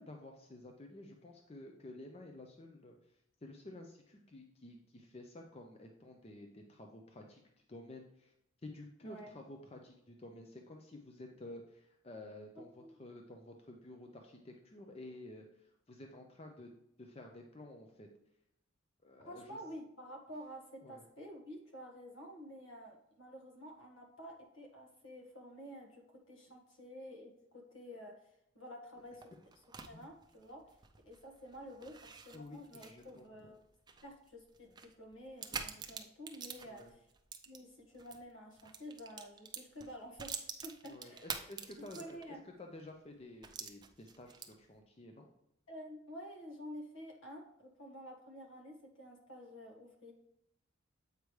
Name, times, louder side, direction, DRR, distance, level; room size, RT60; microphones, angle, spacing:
voice 1, 0.0-3.0 3.4-7.4 7.7-8.3 8.6-16.7 17.0-18.1 19.0-19.6 20.8-21.0 29.9-30.0 32.3-33.5 36.6-36.9 40.8-42.2 42.4-45.3, left 1 dB, 30° left, 3 dB, 0.5 m, -52 dB
voice 2, 9.0-9.4 12.5-13.0 19.2-29.3 29.8-30.7 31.0-33.6 34.0-37.0 37.4-41.3 41.7-42.5 45.7-50.1, equal, 70° left, 1 dB, 1.6 m, -50 dB
sound 1, 29.0-38.2 38.5-42.4 42.8-42.9 43.4-44.7, right 6 dB, 20° right, 0.5 m, -47 dB
8.0 x 4.9 x 3.2 m, 0.80 s
head